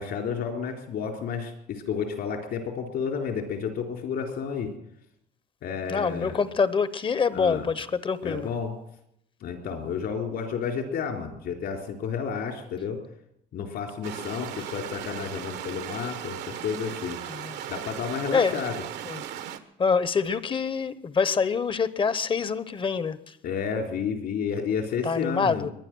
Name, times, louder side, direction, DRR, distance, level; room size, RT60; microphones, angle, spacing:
voice 1, 0.0-4.7 5.6-6.4 7.3-7.7 8.2-8.7 9.4-13.0 13.5-17.2 17.7-18.8 23.4-25.7, left 6 dB, 70° left, 3.9 m, -31 dB
voice 2, 5.9-8.5 17.3-17.6 18.3-18.6 19.1-19.3 19.8-23.4 25.0-25.7, left 5 dB, 30° left, 0.9 m, -26 dB
sound 1, 14.0-19.6, right 10 dB, 80° right, 1.3 m, -37 dB
22.5 x 9.8 x 6.2 m
cardioid pair, 110°, 17 cm